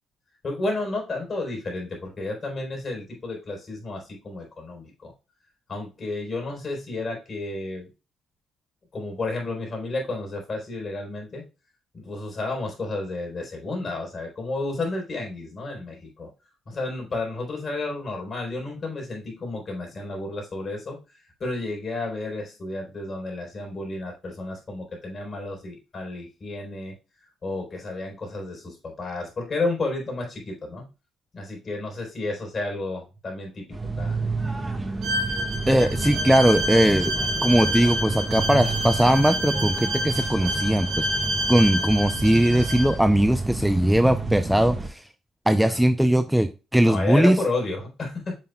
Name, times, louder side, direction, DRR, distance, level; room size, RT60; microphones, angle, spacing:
voice 1, 0.4-5.1 5.7-7.9 8.9-11.5 11.9-16.3 16.7-26.9 27.4-30.9 31.3-34.2 45.6-45.8 46.8-48.4, left 2 dB, 40° left, 1 dB, 4.0 m, -31 dB
sound 1, 33.7-44.9, right 3 dB, 20° right, 1.4 m, -31 dB
Bowed string instrument, 35.0-42.9, right 1 dB, 75° right, 3.9 m, -28 dB
voice 2, 35.7-37.1 37.4-41.1 41.5-45.0 45.5-47.4, right 1 dB, 5° right, 10 dB, 0.5 m, -20 dB
7.5 x 5.7 x 2.2 m, 0.29 s
cardioid pair, 90°, 0 cm